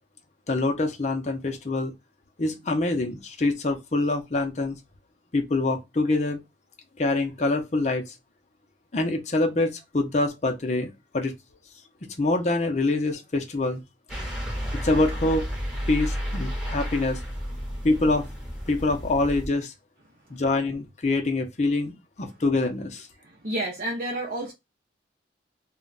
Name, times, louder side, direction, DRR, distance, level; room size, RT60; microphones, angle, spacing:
voice 1, 0.5-1.9 2.4-4.8 5.3-6.4 7.0-8.1 8.9-11.3 12.2-13.8 14.8-15.5 15.9-17.2 17.8-18.3 18.7-19.7 20.3-21.9 22.2-23.1, left 2 dB, 40° left, 0.6 m, -25 dB
sound 1, 14.1-19.5, equal, 5° right, 0.8 m, -32 dB
voice 2, 23.2-24.5, right 1 dB, 55° right, 0.6 m, -30 dB
2.2 x 2.2 x 3.9 m
head